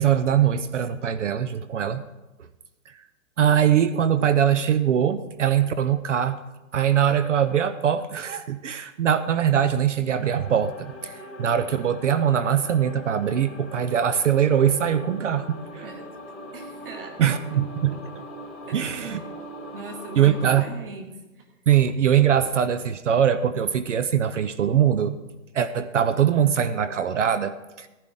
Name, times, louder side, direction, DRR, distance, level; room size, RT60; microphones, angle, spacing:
voice 1, 0.0-2.0 3.4-6.4 6.7-15.8 17.2-18.0 18.7-19.2 20.2-20.7 21.7-25.2 25.5-27.9, right 9 dB, 60° right, 13 dB, 0.7 m, -22 dB
sound 1, 10.1-20.7, equal, ahead, 0.7 m, -41 dB
voice 2, 16.5-17.2 18.7-19.2 19.7-21.5, right 3 dB, 40° right, 4 dB, 1.9 m, -40 dB
15.0 x 11.5 x 3.7 m, 1.1 s
hypercardioid pair, 175°, 41 cm